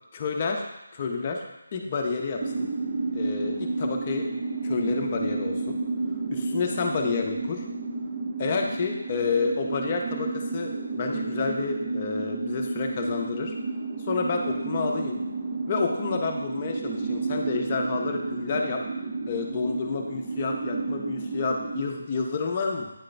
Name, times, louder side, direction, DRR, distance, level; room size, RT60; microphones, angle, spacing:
voice 1, 0.1-0.7 0.9-1.4 1.7-2.7 3.1-4.3 4.6-5.8 6.3-7.7 8.4-13.5 14.1-15.2 15.7-18.8 19.3-22.9, left 4 dB, 30° left, 2 dB, 0.7 m, -29 dB
sound 1, 2.4-21.8, right 3 dB, 35° right, 0.8 m, -31 dB
9.1 x 3.8 x 3.3 m, 0.95 s
figure-of-eight pair, 165°, 0 cm